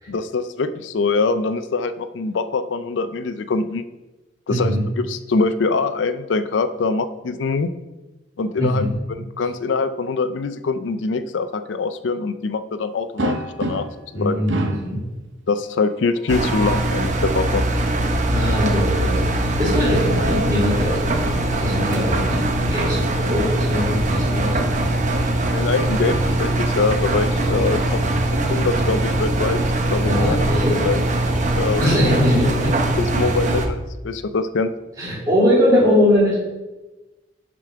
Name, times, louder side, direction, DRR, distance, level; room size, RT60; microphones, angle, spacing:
voice 1, 0.1-3.8 4.5-7.7 8.4-13.9 14.1-14.4 15.5-17.6 25.5-28.0 28.5-29.6 29.9-30.4 30.8-31.0 31.5-31.9 33.0-34.7, left 4 dB, 85° left, 12 dB, 0.5 m, -23 dB
voice 2, 4.5-4.8 8.6-8.9 14.1-15.0 18.3-21.2 21.6-24.8 30.0-30.8 31.8-32.7 35.0-36.3, left 1 dB, 20° right, -7 dB, 2.2 m, -21 dB
sound 1, 13.2-14.1 14.5-15.0 16.2-16.9 19.6-20.6 22.1-22.2 22.6-22.7 24.2-25.5, right 2 dB, 85° right, 0.7 m, -30 dB
Engine, 16.3-33.7, right 1 dB, 40° right, 0.8 m, -21 dB
7.0 x 5.1 x 5.6 m, 1.1 s
head